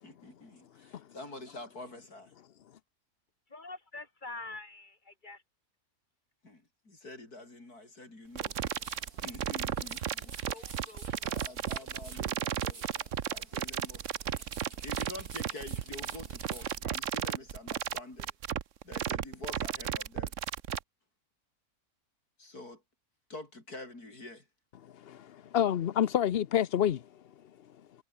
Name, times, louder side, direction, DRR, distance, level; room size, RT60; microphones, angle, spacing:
voice 1, 0.0-2.3 6.4-8.6 9.2-10.9 11.2-14.0 14.8-18.3 18.8-20.4 22.4-22.8 23.3-24.5, left 2 dB, 90° left, 7.0 m, -47 dB
voice 2, 3.5-5.4 9.4-9.9 10.4-11.3, left 2 dB, 30° left, 3.9 m, -46 dB
sound 1, 8.4-20.8, right 9 dB, 60° right, 1.2 m, -34 dB
sound 2, 8.4-16.8, right 3 dB, 85° right, 4.7 m, -53 dB
voice 3, 25.0-27.0, left 10 dB, 55° left, 0.7 m, -28 dB
omnidirectional pair, 1.6 m